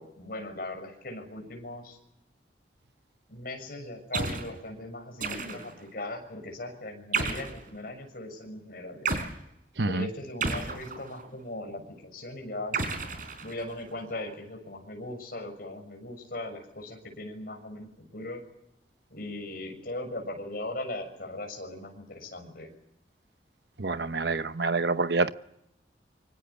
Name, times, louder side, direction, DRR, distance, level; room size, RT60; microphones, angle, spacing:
voice 1, 0.0-2.0 3.3-9.1 9.9-12.8 13.4-18.4 19.1-22.7, left 1 dB, 55° left, 6.8 m, -39 dB
sound 1, 4.1-4.5 5.2-5.8 7.1-7.6 9.1-9.3 10.4-11.3 12.7-13.8, right 4 dB, 50° right, 4.2 m, -32 dB
voice 2, 23.8-25.3, right 3 dB, 70° right, 0.9 m, -27 dB
26.0 x 24.5 x 7.0 m
head